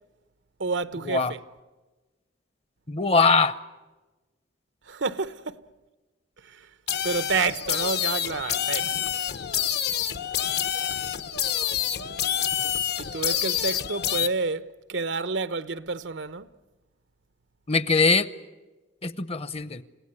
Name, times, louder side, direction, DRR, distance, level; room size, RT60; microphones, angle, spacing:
voice 1, 0.6-1.4 4.9-5.6 6.4-6.7 7.0-8.9 13.0-16.5, right 4 dB, 85° right, 0.9 m, -29 dB
voice 2, 2.9-3.6 17.7-18.3 19.0-19.8, left 4 dB, 35° left, 0.8 m, -22 dB
sound 1, 6.9-14.3, left 10 dB, 60° left, 0.9 m, -27 dB
29.5 x 17.0 x 9.7 m
head